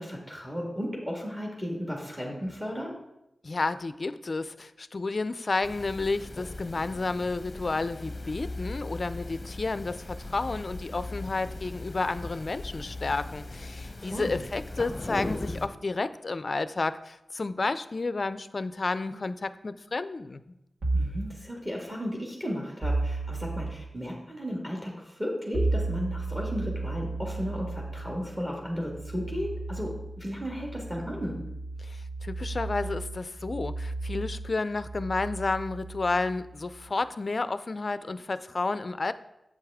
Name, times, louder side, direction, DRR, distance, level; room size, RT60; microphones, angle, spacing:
voice 1, 0.0-3.0 14.0-14.4 20.9-31.4, equal, 15° right, -1 dB, 1.8 m, -34 dB
voice 2, 3.4-20.4 31.8-39.1, left 3 dB, 50° left, 14 dB, 0.4 m, -31 dB
sound 1, 5.6-15.7, left 2 dB, 30° left, 0.8 m, -39 dB
sound 2, 20.8-21.3 22.8-23.8 25.5-36.9, right 2 dB, 75° right, 1.3 m, -34 dB
8.1 x 7.5 x 3.5 m, 0.89 s
wide cardioid pair, 80°, 0 cm